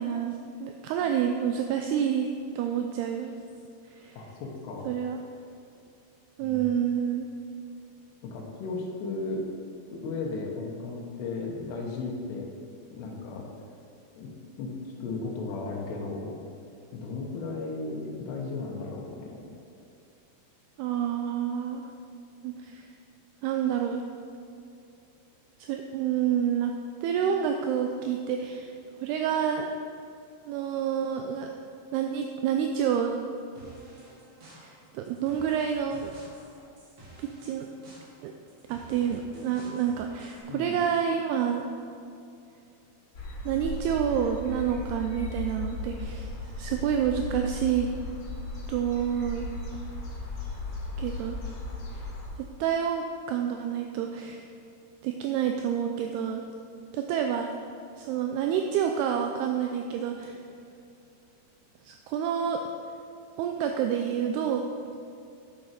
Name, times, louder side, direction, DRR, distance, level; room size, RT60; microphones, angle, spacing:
voice 1, 0.0-2.3 2.6-3.3 3.9-4.2 4.9-5.2 6.4-7.3 20.8-21.8 22.4-22.9 23.4-24.0 25.6-26.7 27.0-28.7 29.0-29.7 30.5-31.5 31.9-33.2 34.5-36.1 37.2-37.7 38.2-38.3 38.7-41.7 43.5-47.9 48.7-49.5 51.0-51.4 51.9-52.0 52.4-54.5 55.0-56.4 56.9-57.5 58.0-60.4 61.8-62.6 63.4-64.6, right 8 dB, 80° right, 4 dB, 2.4 m, -28 dB
voice 2, 4.2-4.9 6.4-6.7 8.2-9.4 9.9-12.5 12.9-13.5 14.2-14.3 14.5-14.7 15.0-16.4 16.9-19.5 40.5-40.8, left 3 dB, 75° left, -1 dB, 3.3 m, -35 dB
sound 1, 33.6-40.4, right 2 dB, 45° right, 2.8 m, -51 dB
sound 2, 43.1-52.3, left 2 dB, 55° left, 1.5 m, -36 dB
10.0 x 7.1 x 5.1 m, 2.6 s
omnidirectional pair, 5.0 m